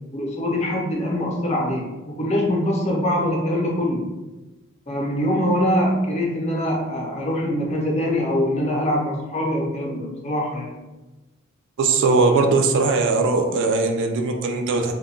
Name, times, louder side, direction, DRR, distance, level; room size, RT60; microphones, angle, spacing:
voice 1, 0.1-1.8 2.2-4.1 4.9-10.7, equal, 30° left, -2 dB, 0.6 m, -23 dB
voice 2, 11.8-14.9, right 3 dB, 60° right, 4 dB, 0.3 m, -20 dB
2.2 x 2.1 x 3.6 m, 1.1 s
head